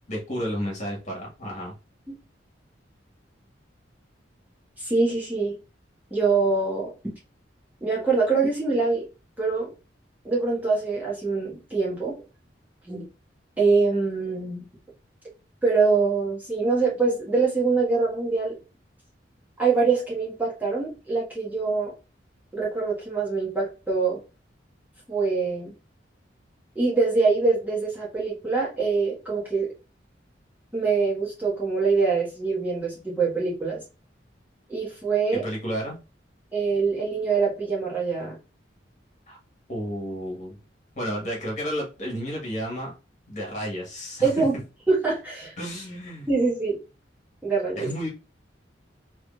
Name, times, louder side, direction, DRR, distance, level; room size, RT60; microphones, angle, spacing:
voice 1, 0.1-1.7 35.3-36.0 39.3-39.4 39.7-40.5 41.0-42.9 43.3-44.4 45.6-46.3 47.7-48.1, equal, 40° left, -2 dB, 1.5 m, -32 dB
voice 2, 4.8-5.6 6.1-6.9 7.8-9.1 9.4-9.7 10.2-12.2 12.8-13.0 13.6-14.6 15.6-18.6 19.6-21.9 22.5-24.2 25.1-25.7 26.7-29.7 30.7-33.8 34.7-35.4 36.5-38.4 44.2-44.5 44.9-45.5 46.3-46.8 47.4-47.9, right 4 dB, 10° right, -6 dB, 1.5 m, -24 dB
3.7 x 3.1 x 2.4 m, 0.30 s
head